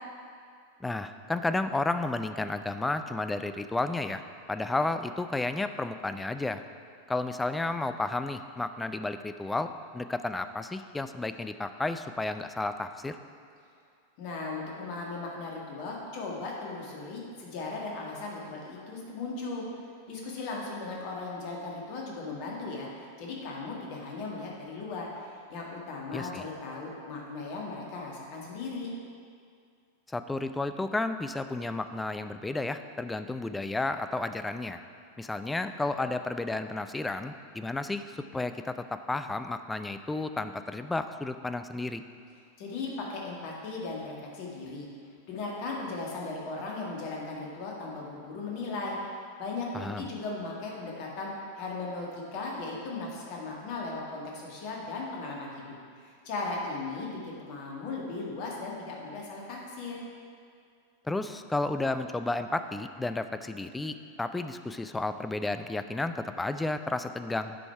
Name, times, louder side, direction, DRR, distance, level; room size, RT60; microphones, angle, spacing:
voice 1, 0.8-4.2 4.5-6.6 7.1-13.2 26.1-26.5 30.1-34.8 35.2-38.1 38.3-42.0 49.7-50.1 61.1-67.6, left 2 dB, 10° left, 9 dB, 0.4 m, -32 dB
voice 2, 14.2-19.6 20.1-22.9 23.2-28.9 42.6-44.9 45.3-49.0 49.4-51.3 51.5-55.6 56.0-60.0, left 3 dB, 45° left, -2 dB, 1.7 m, -37 dB
9.4 x 5.2 x 4.6 m, 2.3 s
figure-of-eight pair, 90°, 0 cm